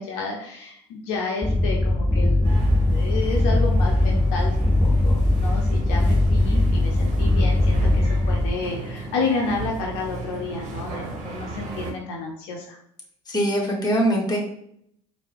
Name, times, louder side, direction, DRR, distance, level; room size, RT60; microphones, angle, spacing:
voice 1, 0.0-2.6 2.9-4.5 4.8-12.8, left 3 dB, 70° left, 0 dB, 0.6 m, -30 dB
sound 1, 1.4-8.5, left 1 dB, 5° left, 1.2 m, -20 dB
sound 2, 2.4-11.9, right 3 dB, 50° right, 0.9 m, -35 dB
voice 2, 13.3-14.4, right 1 dB, 25° left, 1 dB, 1.3 m, -22 dB
4.4 x 2.1 x 3.4 m, 0.72 s
hypercardioid pair, 60°, 15 cm